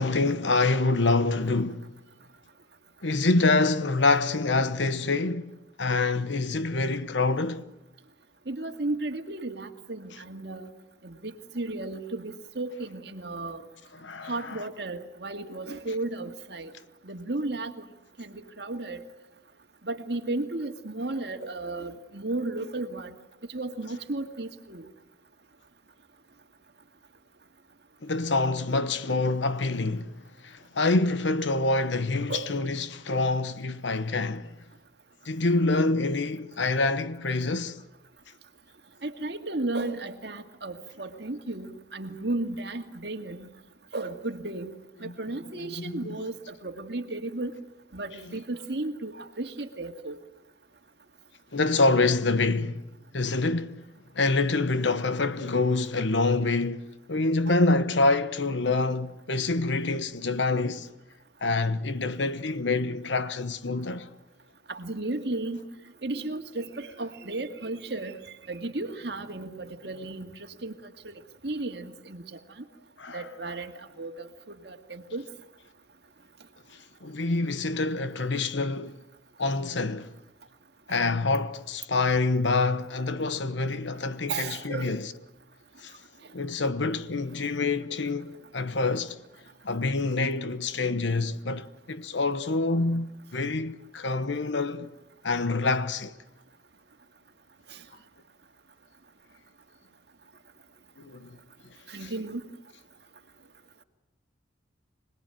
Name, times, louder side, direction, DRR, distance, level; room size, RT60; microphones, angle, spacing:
voice 1, 0.0-1.9 3.0-5.5 5.8-7.7 14.0-14.6 28.0-30.1 30.4-34.5 35.3-37.8 45.0-45.1 45.7-46.1 51.5-52.8 53.1-53.8 54.1-60.9 61.4-64.1 73.0-73.3 77.0-79.0 79.4-80.1 80.9-85.1 85.8-85.9 86.3-89.2 89.6-94.9 95.2-96.1 101.0-101.4 102.0-102.1, left 3 dB, 75° left, 1.1 m, -26 dB
voice 2, 8.5-10.7 11.0-13.6 14.3-16.7 17.0-17.9 18.2-19.0 19.8-23.2 23.5-24.9 32.3-32.5 39.0-43.5 43.9-44.7 45.0-47.5 47.9-50.2 57.5-57.6 64.7-65.6 66.0-68.2 68.5-70.3 70.6-71.1 71.4-72.4 73.1-73.7 74.0-75.2 84.3-85.0 97.7-97.8 101.9-102.4, right 2 dB, 60° right, 2.2 m, -34 dB
26.0 x 20.0 x 9.1 m
head